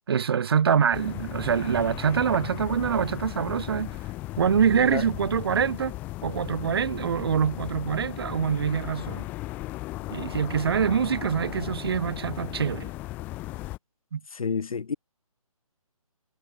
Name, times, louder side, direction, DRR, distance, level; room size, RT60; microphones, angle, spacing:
voice 1, 0.1-4.0 4.4-5.9 6.2-9.3 10.1-12.9 14.1-14.2, right 7 dB, 45° right, 1.6 m, -25 dB
sound 1, 0.9-13.8, left 18 dB, 10° left, 0.9 m, -36 dB
voice 2, 14.3-14.9, left 5 dB, 70° left, 1.4 m, -29 dB
hypercardioid pair, 170°, 18 cm